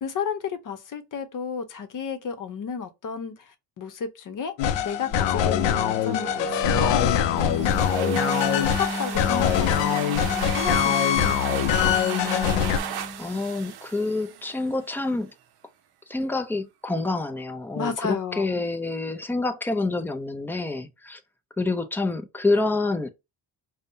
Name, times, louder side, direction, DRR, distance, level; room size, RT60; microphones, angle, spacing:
voice 1, 0.0-4.5 4.8-12.2 17.7-18.7, left 6 dB, 45° left, 0.8 m, -33 dB
sound 1, 4.6-12.8, left 10 dB, 75° left, 0.5 m, -23 dB
sound 2, 4.7-13.4, equal, 25° left, 1.3 m, -33 dB
sound 3, 7.4-14.8, right 9 dB, 60° right, 0.7 m, -35 dB
voice 2, 13.2-15.3 16.1-21.2 21.6-23.1, left 2 dB, 5° left, 0.4 m, -27 dB
5.2 x 2.2 x 2.6 m
cardioid pair, 130°, 44 cm